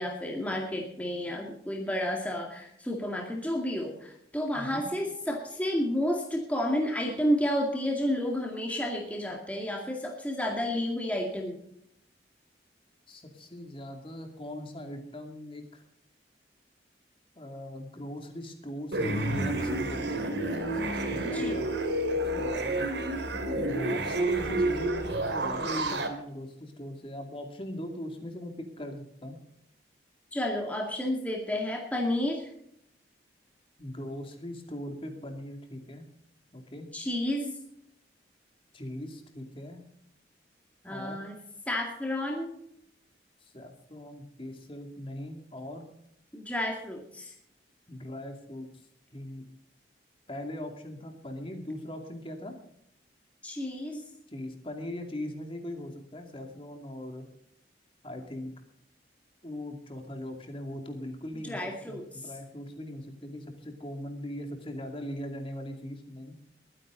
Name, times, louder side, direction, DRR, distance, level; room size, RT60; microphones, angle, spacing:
voice 1, 0.0-11.6 21.3-21.6 30.3-32.5 36.9-37.5 40.8-41.4 41.7-42.5 46.3-47.3 53.4-54.0 61.4-62.2, left 1 dB, 10° left, 0 dB, 2.1 m, -31 dB
voice 2, 4.5-4.8 13.1-15.8 17.4-20.3 20.9-21.7 22.2-22.8 23.5-29.4 33.8-36.1 36.5-36.9 38.7-39.8 40.9-41.2 43.4-45.9 47.9-48.7 49.1-49.4 50.3-52.5 54.3-57.2 58.0-58.5 59.4-61.6 61.9-66.4, left 1 dB, 30° left, 4 dB, 2.5 m, -40 dB
sound 1, 18.9-26.1, right 1 dB, 75° right, 2.9 m, -29 dB
22.0 x 9.9 x 3.9 m, 0.73 s
head